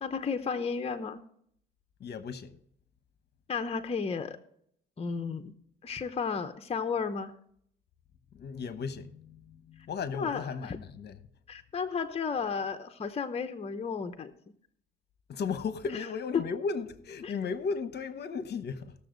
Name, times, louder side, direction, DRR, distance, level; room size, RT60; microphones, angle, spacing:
voice 1, 0.0-1.2 3.5-4.4 5.0-5.5 5.8-7.3 10.1-10.8 11.5-14.3 16.3-16.4 17.2-17.3, left 5 dB, 30° left, 0.8 m, -33 dB
voice 2, 2.0-2.6 8.3-11.2 15.3-18.9, left 5 dB, 55° left, 1.0 m, -35 dB
18.0 x 7.0 x 3.9 m
cardioid pair, 90°, 20 cm